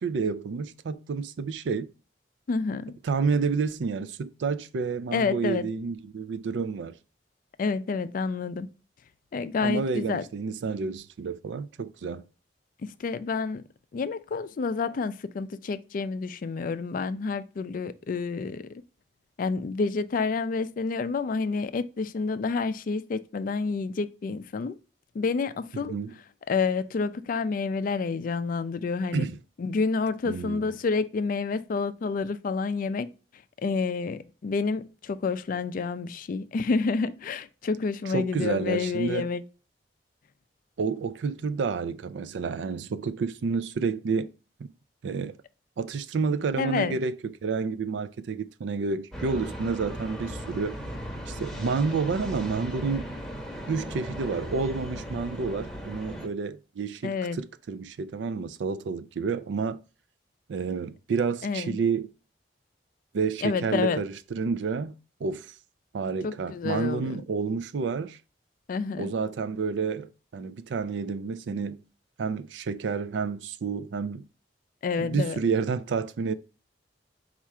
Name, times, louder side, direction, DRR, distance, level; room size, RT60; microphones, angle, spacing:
voice 1, 0.0-1.9 3.0-7.0 9.6-12.2 25.9-26.1 29.1-29.4 30.3-30.7 38.1-39.3 40.8-44.3 44.6-44.7 45.0-45.4 45.8-50.8 51.3-53.1 53.7-59.8 60.5-62.1 63.1-65.5 65.9-68.2 69.0-71.8 72.2-74.2 75.0-76.3, right 5 dB, 85° right, 0.4 m, -29 dB
voice 2, 2.5-3.0 5.1-5.7 7.6-8.7 9.3-10.2 12.8-13.6 13.9-18.7 19.4-24.8 25.1-26.0 26.5-29.2 29.6-33.1 33.6-39.4 46.6-47.0 57.0-57.4 61.4-61.8 63.4-64.0 66.2-67.2 68.7-69.1 74.8-75.4, left 4 dB, 50° left, 0.4 m, -29 dB
sound 1, 49.1-56.3, equal, ahead, 0.8 m, -37 dB
4.6 x 2.4 x 4.2 m
head